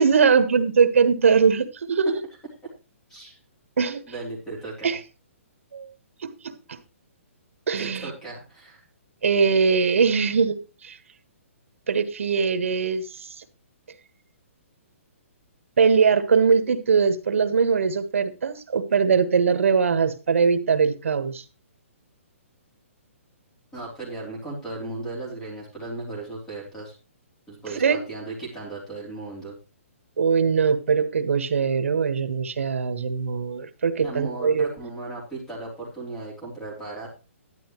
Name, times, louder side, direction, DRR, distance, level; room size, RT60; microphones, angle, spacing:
voice 1, 0.0-2.1 3.8-4.0 4.8-5.0 5.7-5.9 6.2-6.8 7.7-8.1 9.2-11.0 11.9-13.2 15.8-21.4 27.7-28.0 30.2-34.7, right 5 dB, 70° right, 10 dB, 1.5 m, -21 dB
voice 2, 4.1-4.9 7.8-8.8 23.7-26.9 27.5-29.5 34.0-37.1, right 2 dB, 5° left, -3 dB, 3.6 m, -36 dB
11.5 x 10.5 x 3.2 m, 0.30 s
hypercardioid pair, 175°, 7 cm